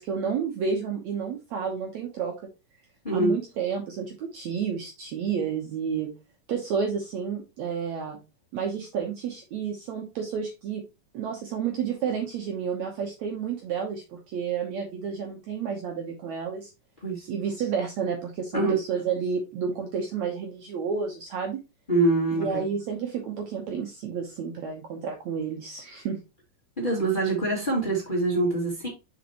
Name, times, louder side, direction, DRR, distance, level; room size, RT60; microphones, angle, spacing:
voice 1, 0.0-2.3 3.1-6.1 6.5-8.2 8.5-10.8 11.1-16.7 17.3-21.6 22.3-26.2, right 6 dB, 65° right, 2.0 m, -30 dB
voice 2, 3.0-3.3 17.0-17.3 18.5-18.8 21.9-22.6 26.8-28.9, right 2 dB, 15° left, 2.2 m, -24 dB
6.5 x 5.3 x 2.9 m
omnidirectional pair, 4.0 m